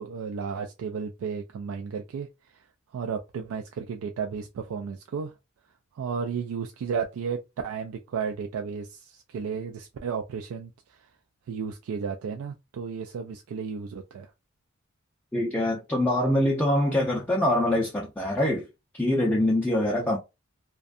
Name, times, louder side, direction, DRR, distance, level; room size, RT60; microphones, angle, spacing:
voice 1, 0.0-2.7 2.9-5.3 5.9-11.1 11.5-14.3 20.0-20.1, right 6 dB, 85° right, 0.3 m, -33 dB
voice 2, 15.3-18.7 19.0-20.2, left 1 dB, 10° left, 0.4 m, -24 dB
2.6 x 2.2 x 2.4 m
head